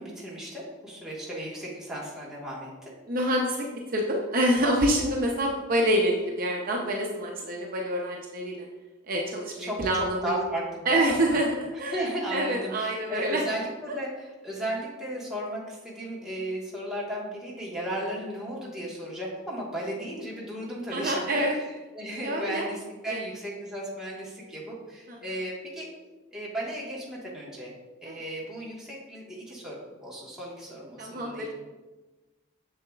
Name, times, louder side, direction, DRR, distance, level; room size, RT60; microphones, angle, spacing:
voice 1, 0.0-2.9 9.6-11.4 11.9-25.9 26.3-27.7 28.0-31.5, right 1 dB, 5° right, -6 dB, 1.4 m, -35 dB
voice 2, 3.1-3.6 3.9-8.6 9.1-10.4 10.9-12.0 12.3-13.4 20.9-21.5 22.2-22.7 23.1-23.2 25.1-25.2 28.1-28.2 31.0-31.5, right 1 dB, 45° right, -1 dB, 0.7 m, -26 dB
6.9 x 6.7 x 2.4 m, 1.2 s
head